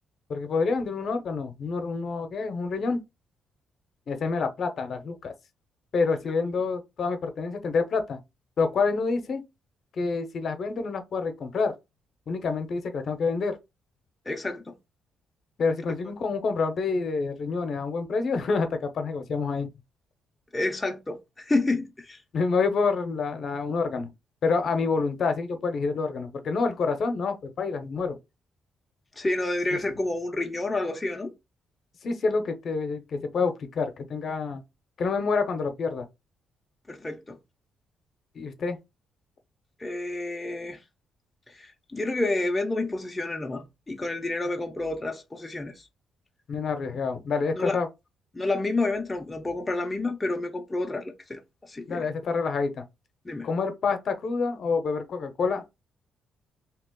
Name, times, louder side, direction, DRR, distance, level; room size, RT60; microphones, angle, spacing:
voice 1, 0.3-3.0 4.1-5.3 5.9-8.2 8.6-9.4 9.9-11.7 12.3-13.6 15.6-19.7 22.3-24.1 24.4-28.2 29.7-29.8 32.0-34.6 35.0-36.0 38.3-38.8 46.5-47.9 51.9-52.8 53.4-55.7, left 4 dB, 55° left, 0.7 m, -27 dB
voice 2, 14.3-14.7 20.5-22.2 29.2-31.3 36.9-37.4 39.8-40.8 41.5-45.9 47.5-47.8 48.3-52.1 53.2-53.5, left 2 dB, 20° left, 0.6 m, -29 dB
2.9 x 2.4 x 3.7 m
cardioid pair, 90°, 0 cm